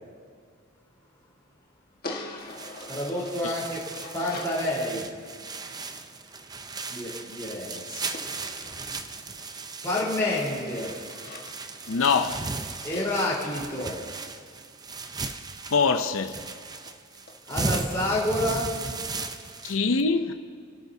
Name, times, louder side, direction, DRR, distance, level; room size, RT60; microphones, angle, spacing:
sound 1, 2.0-4.6 8.1-9.5 10.0-14.1 16.0-16.1 16.4-16.5 16.9-17.0 17.3-17.4 17.7-17.9 18.2-18.3, left 2 dB, 45° left, 1.6 m, -43 dB
sound 2, 2.4-19.8, right 3 dB, 20° right, 0.6 m, -36 dB
voice 1, 2.9-3.8 4.1-5.1 6.9-7.8 9.8-10.9 12.8-14.0 17.5-18.7, left 1 dB, 15° left, 3.9 m, -28 dB
voice 2, 11.9-12.5 15.7-16.4 19.6-20.3, left 4 dB, 65° left, 0.6 m, -24 dB
29.0 x 12.5 x 2.8 m
head